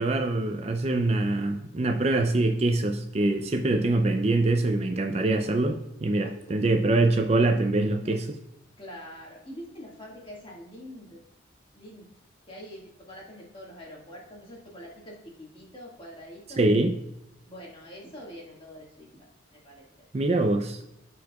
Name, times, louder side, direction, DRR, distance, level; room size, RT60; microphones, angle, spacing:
voice 1, 0.0-8.2 16.6-16.9 20.1-20.8, right 2 dB, 35° right, 5 dB, 0.4 m, -24 dB
voice 2, 6.2-6.8 8.0-8.2 8.8-11.2 11.7-12.1 12.5-16.7 17.5-19.9 20.3-20.5, equal, 25° left, -3 dB, 1.9 m, -45 dB
13.5 x 4.6 x 2.3 m, 0.90 s
head